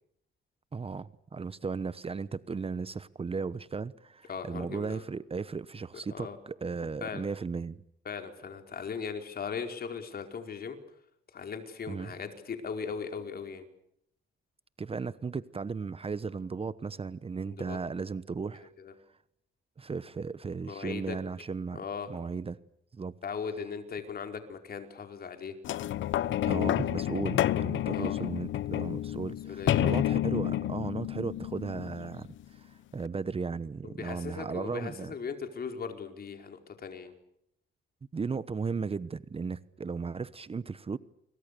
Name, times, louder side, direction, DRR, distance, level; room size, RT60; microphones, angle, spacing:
voice 1, 0.7-7.8 11.9-12.2 14.8-18.7 19.8-21.8 22.1-22.6 22.9-23.2 26.5-35.1 38.1-41.0, right 5 dB, 30° right, 1.1 m, -36 dB
voice 2, 4.3-5.0 6.1-6.4 7.0-7.2 8.0-10.8 11.3-13.7 17.4-17.8 18.8-18.9 20.7-21.2 21.7-22.1 23.2-25.5 27.9-28.2 29.5-29.8 33.8-37.1, left 6 dB, 50° left, 4.9 m, -38 dB
sound 1, 25.6-32.4 33.0-33.1, left 12 dB, 70° left, 0.9 m, -30 dB
30.0 x 23.5 x 6.9 m
cardioid pair, 90°, 20 cm